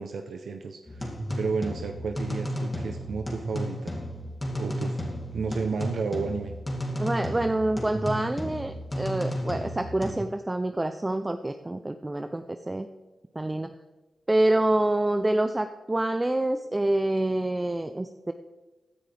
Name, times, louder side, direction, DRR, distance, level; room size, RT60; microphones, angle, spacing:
voice 1, 0.0-4.0 4.6-6.5, right 5 dB, 80° right, 5 dB, 0.7 m, -32 dB
sound 1, 0.9-10.1, equal, 25° left, 2.4 m, -33 dB
voice 2, 7.0-12.9 13.4-13.7 14.3-18.3, right 1 dB, 20° right, 8 dB, 0.5 m, -27 dB
16.5 x 9.9 x 3.4 m, 1.1 s
cardioid pair, 80°, 0 cm